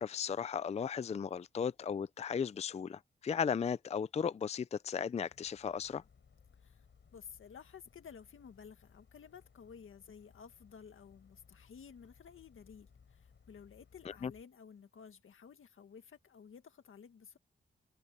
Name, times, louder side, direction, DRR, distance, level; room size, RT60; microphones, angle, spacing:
voice 1, 0.0-6.0 14.1-14.3, left 7 dB, 35° left, 0.4 m, -36 dB
sound 1, 5.2-14.4, left 6 dB, 65° left, 4.3 m, -64 dB
voice 2, 7.1-17.4, left 7 dB, 90° left, 1.9 m, -54 dB
wide cardioid pair, 130°, 21 cm